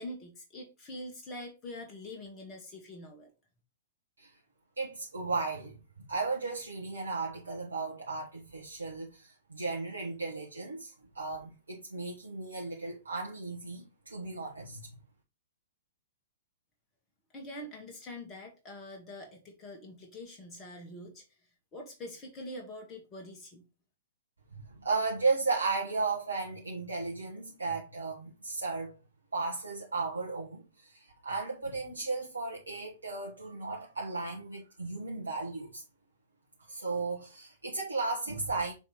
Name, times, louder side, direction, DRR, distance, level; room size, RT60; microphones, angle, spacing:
voice 1, 0.0-3.3 17.3-21.2 21.7-23.6, left 1 dB, 25° left, 1.9 m, -44 dB
voice 2, 4.8-5.8 6.1-14.8 24.8-28.9 29.3-35.8 36.7-38.7, right 3 dB, 80° right, 1.6 m, -35 dB
7.1 x 3.4 x 4.5 m
figure-of-eight pair, 110°, 0 cm